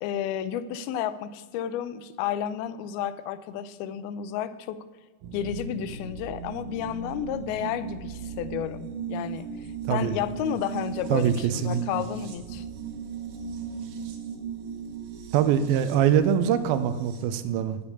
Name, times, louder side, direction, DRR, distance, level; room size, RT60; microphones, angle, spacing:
voice 1, 0.0-4.8 5.3-12.7, left 10 dB, 90° left, 13 dB, 2.6 m, -32 dB
sound 1, 5.2-17.2, right 6 dB, 65° right, 2.6 m, -37 dB
voice 2, 11.1-11.8 15.3-17.8, right 9 dB, 85° right, 11 dB, 2.5 m, -23 dB
14.0 x 5.3 x 7.0 m, 1.4 s
omnidirectional pair, 4.3 m